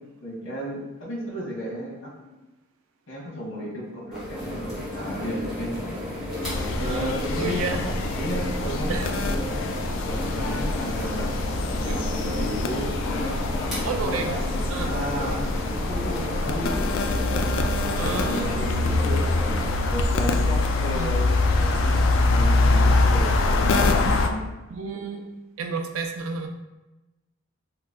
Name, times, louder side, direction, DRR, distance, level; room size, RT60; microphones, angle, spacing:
voice 1, 0.0-2.3 3.1-5.8 6.8-9.0 9.7-11.4 11.8-14.4 14.8-16.9 17.9-19.3 19.8-24.5, equal, 85° left, -4 dB, 1.2 m, -34 dB
sound 1, 4.1-19.7, left 1 dB, ahead, 1.0 m, -33 dB
sound 2, 6.4-24.3, left 2 dB, 70° left, 0.3 m, -24 dB
voice 2, 6.8-7.8 8.9-9.1 11.9-12.0 13.8-14.3 14.7-14.9 18.0-18.5 20.9-21.1 24.7-25.3 25.6-26.5, right 4 dB, 85° right, 4 dB, 0.4 m, -31 dB
2.9 x 2.2 x 3.5 m, 1.1 s
head